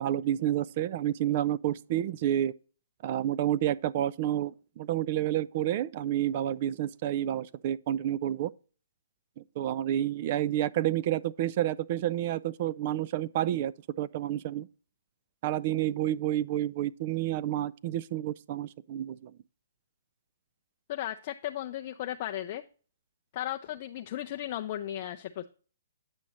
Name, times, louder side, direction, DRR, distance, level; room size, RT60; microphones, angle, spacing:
voice 1, 0.0-2.5 3.0-8.5 9.4-14.7 15.4-19.3, right 12 dB, 40° right, 0.3 m, -29 dB
voice 2, 20.9-22.6 23.3-25.5, left 12 dB, 40° left, 0.4 m, -35 dB
8.8 x 6.1 x 2.8 m
hypercardioid pair, 140°, 0 cm